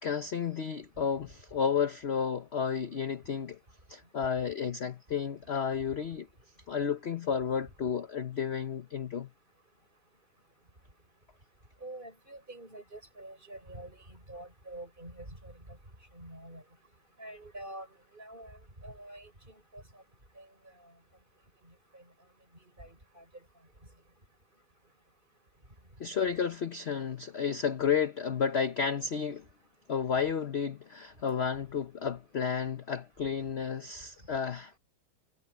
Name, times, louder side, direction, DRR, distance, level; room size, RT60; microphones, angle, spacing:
voice 1, 0.0-3.6 3.9-6.3 6.7-9.3 26.0-29.4 29.9-34.7, left 7 dB, 50° left, 0.8 m, -32 dB
voice 2, 11.8-15.5 16.1-16.6 17.2-17.9 18.1-18.6 18.8-19.3 19.7-19.8 20.4-20.5 22.8-23.2, right 1 dB, 25° right, 7.0 m, -46 dB
omnidirectional pair, 2.2 m